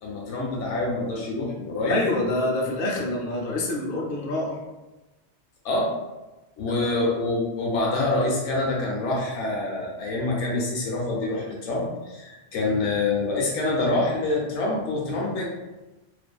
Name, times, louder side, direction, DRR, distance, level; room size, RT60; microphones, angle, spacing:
voice 1, 0.0-2.0 5.6-5.9 6.6-15.5, left 2 dB, 85° left, -2 dB, 1.0 m, -26 dB
voice 2, 1.9-4.6 6.6-7.0 12.6-12.8, left 2 dB, 60° left, -2 dB, 0.6 m, -27 dB
2.5 x 2.5 x 2.2 m, 1.1 s
omnidirectional pair, 1.2 m